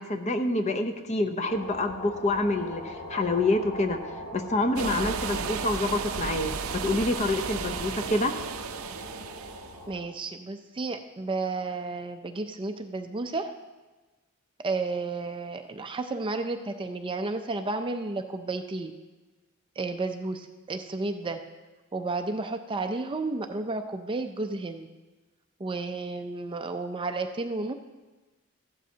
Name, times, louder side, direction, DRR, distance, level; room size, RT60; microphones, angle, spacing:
voice 1, 0.0-4.0 4.3-8.3, left 2 dB, 30° left, 7 dB, 0.7 m, -27 dB
sound 1, 1.4-10.0, left 1 dB, 70° left, 3.3 m, -41 dB
sound 2, 4.7-9.8, right 6 dB, 70° right, 0.5 m, -34 dB
voice 2, 9.9-13.5 14.6-18.9 19.8-21.4 21.9-24.9 25.6-27.7, right 3 dB, 25° right, 7 dB, 0.4 m, -32 dB
15.0 x 11.5 x 2.8 m, 1.2 s
head